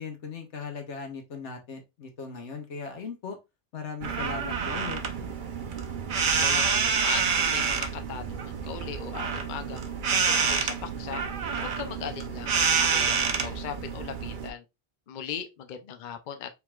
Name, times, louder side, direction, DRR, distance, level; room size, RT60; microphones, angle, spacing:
voice 1, 0.0-3.4 3.7-5.0, left 5 dB, 85° left, 1.3 m, -38 dB
sound 1, 4.0-14.5, right 6 dB, 50° right, 0.7 m, -28 dB
voice 2, 6.4-9.8 10.3-11.2 11.6-14.6 15.1-16.5, left 8 dB, 50° left, 0.7 m, -38 dB
4.5 x 3.8 x 2.3 m
omnidirectional pair, 1.2 m